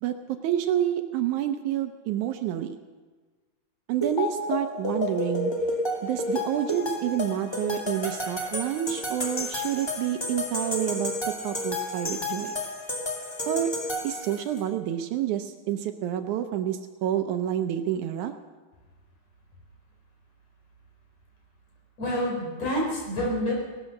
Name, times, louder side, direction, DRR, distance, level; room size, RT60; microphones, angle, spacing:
voice 1, 0.0-2.8 3.9-5.5 6.0-12.6 13.4-13.7 14.0-18.3, right 11 dB, 75° right, 7 dB, 2.0 m, -28 dB
sound 1, 4.0-14.6, left 1 dB, 15° left, 1.0 m, -31 dB
voice 2, 22.0-23.5, left 1 dB, 55° left, -2 dB, 5.4 m, -27 dB
18.0 x 12.5 x 6.4 m, 1.3 s
omnidirectional pair, 3.7 m